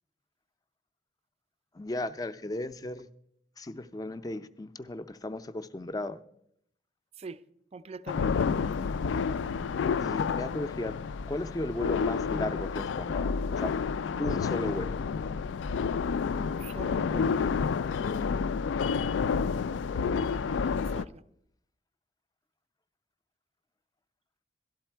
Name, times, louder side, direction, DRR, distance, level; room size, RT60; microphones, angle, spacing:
voice 1, 1.7-3.1 3.6-6.2 10.0-11.0 11.3-13.7 14.2-15.0, left 1 dB, 20° left, 0.5 m, -35 dB
voice 2, 7.7-8.5 16.3-17.6 20.1-21.2, right 4 dB, 35° right, 0.4 m, -44 dB
sound 1, 8.1-21.0, left 5 dB, 85° left, 0.3 m, -29 dB
12.5 x 12.0 x 4.4 m
head